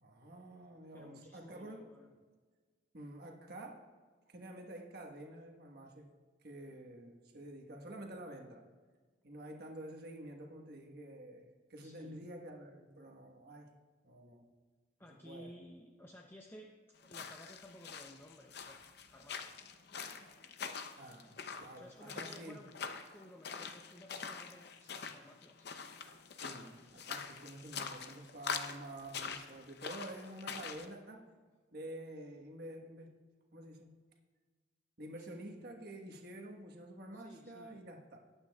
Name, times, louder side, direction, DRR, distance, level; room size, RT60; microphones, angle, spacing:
voice 1, 0.0-1.8 2.9-3.9 4.3-6.1 6.4-8.6 9.2-13.7 14.0-14.5 15.2-15.5 21.0-21.3 21.6-22.6 26.4-31.3 31.7-33.2 33.5-33.9 35.0-38.2, right 1 dB, 55° right, 2 dB, 1.4 m, -49 dB
voice 2, 0.9-2.1 11.8-12.2 15.0-18.8 19.1-19.5 21.7-22.7 23.1-25.7 35.2-35.6 37.1-37.8, equal, 10° left, 1 dB, 0.6 m, -56 dB
sound 1, 17.0-30.9, left 6 dB, 55° left, 0.7 m, -45 dB
19.0 x 8.6 x 2.4 m, 1.5 s
head